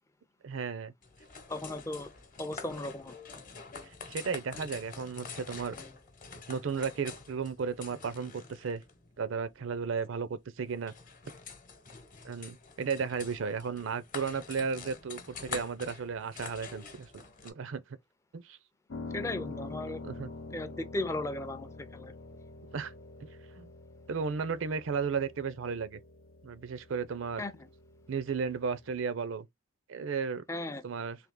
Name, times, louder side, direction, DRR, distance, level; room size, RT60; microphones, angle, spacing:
voice 1, 0.4-0.9 4.1-5.7 6.5-8.8 9.2-10.9 12.2-17.8 18.3-18.6 20.0-20.3 22.7-22.9 23.6-23.7 24.1-26.0 26.4-27.4 28.1-29.5 29.9-30.4 30.8-31.2, right 5 dB, 70° right, 0.5 m, -34 dB
sound 1, 1.0-17.5, left 5 dB, 40° left, 0.9 m, -47 dB
voice 2, 1.5-2.1 2.4-3.1 19.1-20.0 20.5-22.1 27.4-27.7 30.5-30.8, left 2 dB, 15° left, 0.4 m, -36 dB
Piano, 18.9-29.0, left 3 dB, 80° left, 0.6 m, -46 dB
3.4 x 2.8 x 3.7 m
head